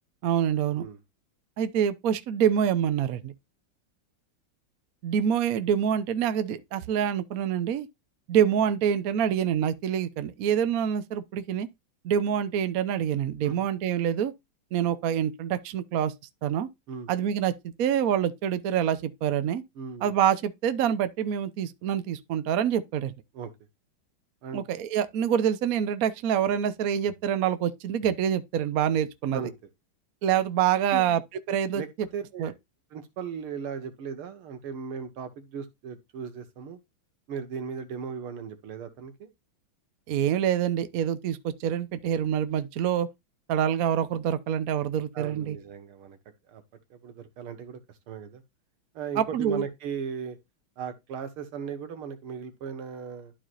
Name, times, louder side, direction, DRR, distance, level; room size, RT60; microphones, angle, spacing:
voice 1, 0.2-0.8 1.6-3.3 5.0-7.9 8.3-11.7 12.0-14.3 14.7-16.1 16.4-16.7 17.1-19.6 20.0-23.1 24.5-29.4 30.2-31.2 31.5-32.1 32.4-32.5 40.1-43.1 43.5-45.6 49.2-49.6, right 9 dB, 65° right, 0.9 m, -26 dB
voice 2, 19.8-20.1 23.3-23.5 24.4-24.6 29.3-29.5 30.9-31.2 31.8-32.5 32.9-36.8 37.3-39.3 45.1-46.2 46.5-46.6 46.9-47.8 48.1-48.4 49.0-50.4 50.8-53.3, right 6 dB, 85° right, 2.1 m, -37 dB
12.0 x 4.9 x 2.4 m
omnidirectional pair, 2.4 m